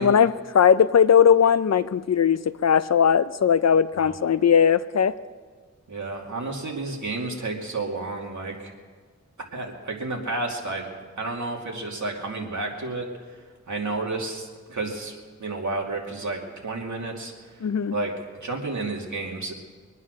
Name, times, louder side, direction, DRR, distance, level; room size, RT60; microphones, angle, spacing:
voice 1, 0.0-5.2 17.6-17.9, left 7 dB, 60° left, 14 dB, 0.6 m, -19 dB
voice 2, 5.9-8.7 9.5-10.9 11.2-13.1 13.7-17.3 17.9-18.1 18.4-19.5, right 3 dB, 75° right, 0 dB, 2.5 m, -31 dB
23.5 x 9.5 x 6.5 m, 1.5 s
wide cardioid pair, 95°, 30 cm